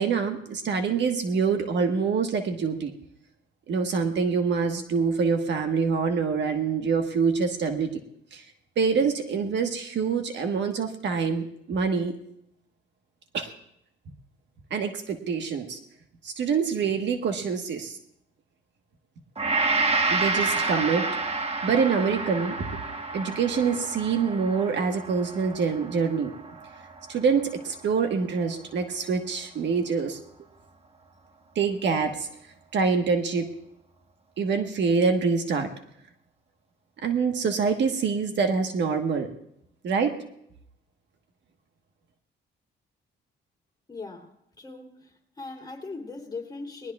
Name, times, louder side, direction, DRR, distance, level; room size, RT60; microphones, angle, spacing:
voice 1, 0.0-2.9 3.7-8.0 8.3-8.4 8.8-12.2 13.3-13.5 14.7-15.8 16.2-18.0 20.1-21.1 21.6-22.8 23.1-26.3 27.1-30.2 31.5-32.3 32.7-33.5 34.4-35.7 37.0-39.3 39.8-40.2, right 5 dB, 65° right, 6 dB, 1.4 m, -25 dB
Gong, 19.4-27.7 28.1-28.3, right 3 dB, 30° right, 1.3 m, -29 dB
voice 2, 43.9-44.3 44.6-46.9, left 3 dB, 20° left, 0 dB, 3.3 m, -39 dB
29.5 x 19.0 x 2.4 m, 0.76 s
cardioid pair, 90°, 20 cm